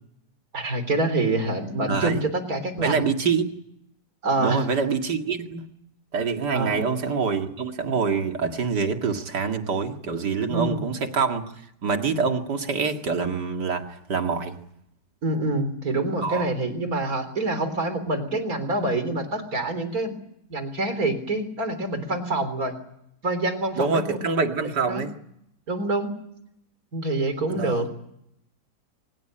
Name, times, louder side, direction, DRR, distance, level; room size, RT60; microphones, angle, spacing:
voice 1, 0.5-3.1 4.2-4.6 6.5-6.9 10.5-10.9 15.2-20.2 20.5-22.7 23.2-24.3 24.6-25.0 25.7-26.1 26.9-27.9, right 2 dB, 55° right, 10 dB, 4.2 m, -26 dB
voice 2, 1.9-2.2 2.8-3.5 4.4-5.7 6.1-11.4 11.8-14.6 16.2-16.4 23.7-25.1 27.5-27.9, right 5 dB, 75° right, 5 dB, 2.7 m, -25 dB
24.5 x 20.5 x 8.9 m, 0.75 s
omnidirectional pair, 1.8 m